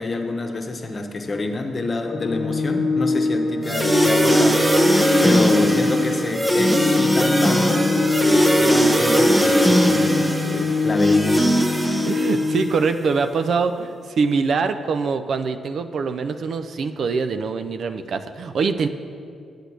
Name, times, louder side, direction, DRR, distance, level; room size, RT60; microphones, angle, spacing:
voice 1, 0.0-4.7 5.2-11.5, left 2 dB, 40° left, 4 dB, 1.1 m, -27 dB
Organ, 2.0-13.0, left 3 dB, 65° left, 0.5 m, -24 dB
sound 1, 3.6-12.8, equal, 15° right, 1.0 m, -19 dB
voice 2, 11.9-18.9, right 5 dB, 65° right, 9 dB, 0.5 m, -24 dB
8.1 x 6.7 x 6.1 m, 2.4 s
supercardioid pair, 50°, 0 cm